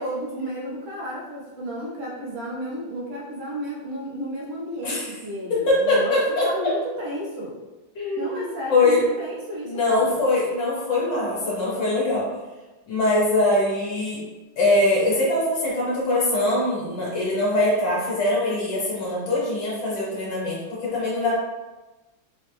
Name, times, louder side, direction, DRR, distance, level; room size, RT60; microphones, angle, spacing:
voice 1, 0.0-6.1 6.4-7.5 8.2-10.1, equal, 85° right, -4 dB, 1.7 m, -32 dB
voice 2, 4.8-5.1 5.5-6.7 7.9-9.0 9.6-12.3 12.9-14.2 14.6-21.3, left 2 dB, 70° left, -6 dB, 1.5 m, -22 dB
4.1 x 2.0 x 3.0 m, 1.1 s
omnidirectional pair, 2.1 m